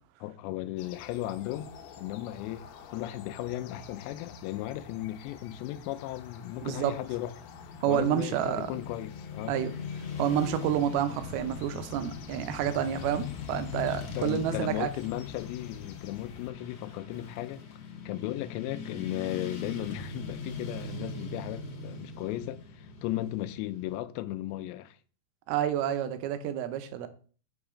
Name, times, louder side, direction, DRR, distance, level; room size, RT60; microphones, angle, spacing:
voice 1, 0.2-1.7 2.0-7.3 7.9-9.5 14.2-17.6 18.1-25.0, left 14 dB, 90° left, 2.8 m, -36 dB
sound 1, 0.8-16.5, left 5 dB, 75° left, 2.6 m, -49 dB
voice 2, 6.6-6.9 7.8-8.7 9.5-9.7 10.2-14.9 25.5-27.1, right 10 dB, 75° right, 2.5 m, -29 dB
Motorcycle / Traffic noise roadway noise, 7.3-24.0, left 5 dB, 55° left, 2.0 m, -41 dB
7.1 x 5.7 x 4.9 m
omnidirectional pair, 5.0 m